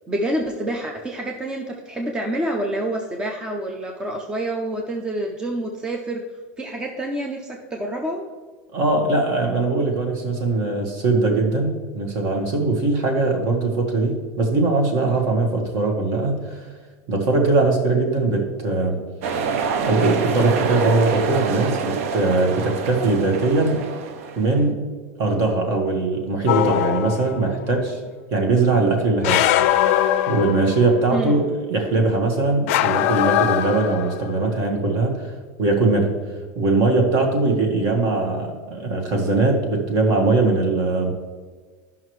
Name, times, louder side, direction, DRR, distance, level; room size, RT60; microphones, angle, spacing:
voice 1, 0.1-6.2 6.6-8.2 31.1-31.4, right 1 dB, 10° right, 2 dB, 0.5 m, -27 dB
voice 2, 8.7-16.7 17.1-19.0 19.8-23.8 24.4-24.8 25.2-28.0 28.3-29.5 30.3-35.3 35.6-36.1 36.5-41.1, right 3 dB, 45° right, 2 dB, 1.5 m, -21 dB
sound 1, 19.2-24.6, right 5 dB, 75° right, 0.7 m, -26 dB
sound 2, 26.5-27.5 29.2-31.0 32.7-34.3, left 12 dB, 65° left, 0.4 m, -21 dB
11.0 x 5.7 x 3.1 m, 1.5 s
supercardioid pair, 160°, 8 cm